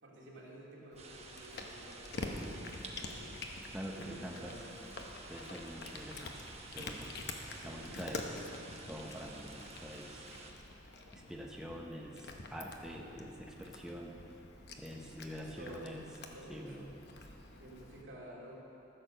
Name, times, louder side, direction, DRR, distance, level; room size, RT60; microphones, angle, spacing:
voice 1, 0.0-3.3 3.9-4.8 7.5-8.0 15.4-17.0 17.6-18.6, right 1 dB, 70° right, -5 dB, 2.5 m, -52 dB
Cat, 0.9-18.0, left 2 dB, 60° left, 0.9 m, -47 dB
sound 1, 1.0-10.5, right 3 dB, 35° right, 1.0 m, -51 dB
voice 2, 3.7-4.5 5.3-6.4 6.7-7.1 7.6-8.4 8.9-10.2 11.1-14.2 14.8-16.0 16.5-16.9, equal, 5° right, -1 dB, 0.7 m, -45 dB
14.5 x 6.6 x 6.5 m, 3.0 s
head